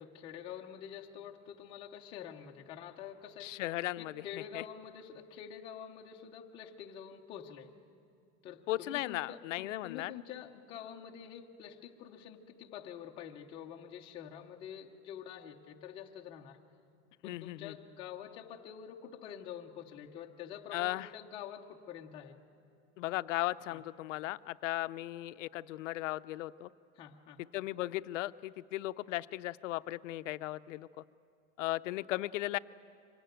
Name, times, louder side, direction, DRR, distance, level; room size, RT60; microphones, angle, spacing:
voice 1, 0.0-3.5 4.0-7.7 8.4-16.6 17.2-22.4 23.7-23.8 26.9-27.4, left 9 dB, 15° left, 1 dB, 0.5 m, -47 dB
voice 2, 3.4-4.1 4.5-4.6 8.7-10.1 17.2-17.7 20.7-21.1 23.0-26.7 27.5-30.9 31.6-32.6, left 17 dB, 70° left, 14 dB, 0.5 m, -36 dB
24.5 x 18.5 x 9.1 m, 2.5 s
supercardioid pair, 175°, 39 cm